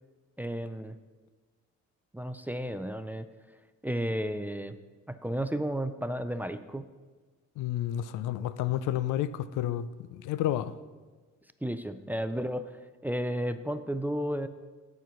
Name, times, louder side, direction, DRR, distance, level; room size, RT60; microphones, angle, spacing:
voice 1, 0.4-1.0 2.1-3.3 3.8-4.8 5.1-6.9 11.6-14.5, equal, 5° right, 0.4 m, -33 dB
voice 2, 7.6-10.8, left 12 dB, 90° left, 0.5 m, -31 dB
9.4 x 4.5 x 5.9 m
cardioid pair, 90°, 30 cm